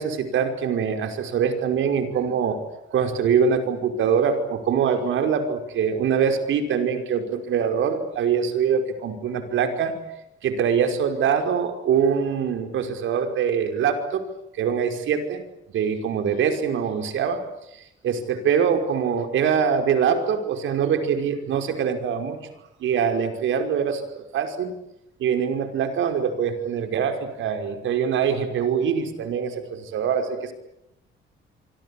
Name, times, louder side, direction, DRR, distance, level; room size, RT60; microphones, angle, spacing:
voice 1, 0.0-2.6 2.9-10.0 10.4-14.2 14.6-15.4 15.7-17.4 18.0-22.4 22.8-24.7 25.2-30.5, right 7 dB, 75° right, 7 dB, 5.4 m, -23 dB
26.0 x 25.0 x 8.7 m, 0.85 s
cardioid pair, 90°, 20 cm